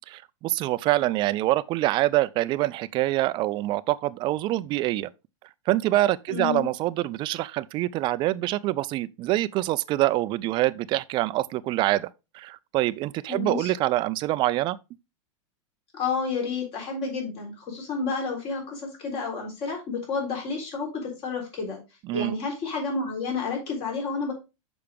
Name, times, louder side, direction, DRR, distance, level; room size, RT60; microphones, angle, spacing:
voice 1, 0.4-5.1 5.7-12.1 12.3-14.8 22.1-22.3, right 16 dB, 30° right, 0.4 m, -25 dB
voice 2, 6.3-6.7 13.3-13.7 15.9-21.8 22.1-24.3, left 4 dB, 35° left, 3.7 m, -30 dB
6.6 x 5.8 x 3.4 m
supercardioid pair, 140°, 16 cm